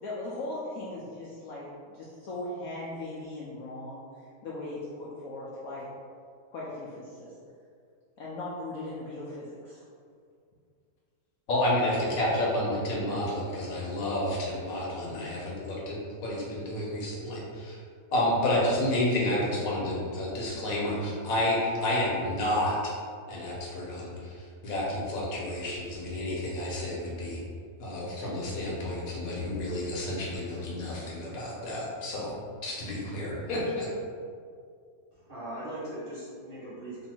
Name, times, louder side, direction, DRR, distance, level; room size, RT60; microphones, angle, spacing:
voice 1, 0.0-4.0 4.4-5.9 6.5-7.3 8.2-9.8, left 2 dB, 75° left, -6 dB, 0.8 m, -38 dB
voice 2, 11.5-17.8 18.1-22.9 23.3-27.4 27.8-32.3 32.6-33.9, left 1 dB, 55° left, -5 dB, 1.1 m, -30 dB
voice 3, 35.1-37.1, right 1 dB, 30° right, -9 dB, 1.3 m, -39 dB
3.1 x 2.7 x 4.4 m, 2.2 s
omnidirectional pair, 2.1 m